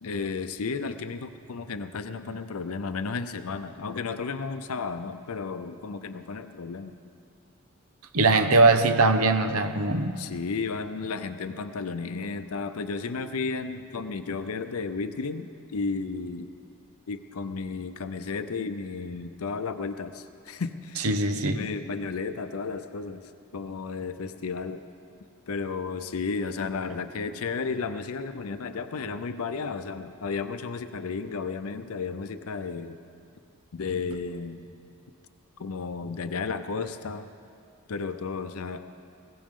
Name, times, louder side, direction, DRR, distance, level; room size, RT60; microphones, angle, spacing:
voice 1, 0.0-6.9 10.2-16.5 17.1-21.1 21.4-24.8 25.5-33.0 33.7-34.8 35.6-37.3 37.9-38.8, left 4 dB, 70° left, 10 dB, 0.6 m, -33 dB
voice 2, 8.1-10.2 21.0-21.6, right 3 dB, 70° right, 8 dB, 0.9 m, -21 dB
20.5 x 17.0 x 3.7 m, 2.4 s
head